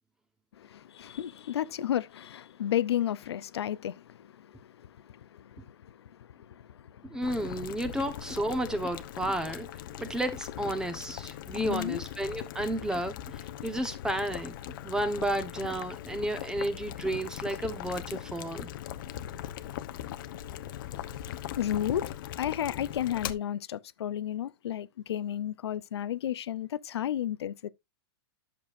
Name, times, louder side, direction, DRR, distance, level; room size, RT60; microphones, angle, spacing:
voice 1, 0.6-7.2 11.6-12.0 21.6-27.7, left 11 dB, 80° left, 0.7 m, -33 dB
voice 2, 7.0-9.7 10.0-14.5 14.8-18.7, right 1 dB, 5° right, 1.2 m, -32 dB
Boiling, 7.2-23.3, left 11 dB, 55° left, 0.9 m, -40 dB
10.5 x 6.9 x 2.6 m
hypercardioid pair, 150°, 14 cm